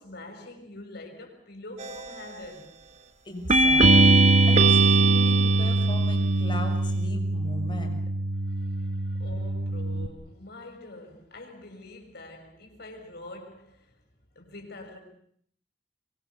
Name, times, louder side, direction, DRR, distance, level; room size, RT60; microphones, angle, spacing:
voice 1, 0.0-2.7 8.5-14.0 14.3-15.0, left 2 dB, 60° left, 6.7 m, -45 dB
sound 1, 1.8-2.3 3.5-6.3, right 3 dB, 40° right, 1.3 m, -22 dB
voice 2, 3.2-8.0, left 1 dB, 25° left, 6.3 m, -38 dB
Bass guitar, 3.8-10.1, right 2 dB, 75° right, 1.3 m, -23 dB
26.5 x 23.5 x 7.2 m
head